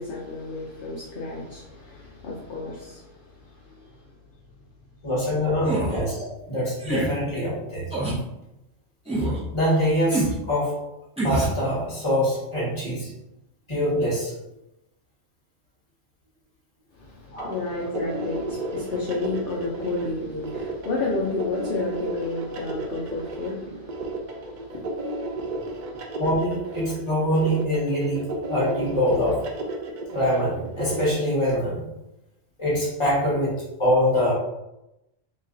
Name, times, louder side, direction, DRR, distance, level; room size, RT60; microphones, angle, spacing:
voice 1, 0.0-4.0 17.0-26.1, left 3 dB, 55° left, -4 dB, 0.8 m, -32 dB
voice 2, 5.0-7.9 9.5-10.7 11.2-13.1 13.7-14.3 17.3-17.5 26.2-29.4 30.1-31.8 32.6-34.3, equal, 25° left, -6 dB, 1.2 m, -24 dB
sound 1, 5.6-6.0 6.8-7.1 7.9-8.2 9.1-9.4 10.1-10.4 11.2-11.6, right 1 dB, 5° right, 0.7 m, -25 dB
sound 2, 17.4-31.1, right 2 dB, 55° right, 0.5 m, -33 dB
3.0 x 2.4 x 3.7 m, 0.90 s
omnidirectional pair, 1.3 m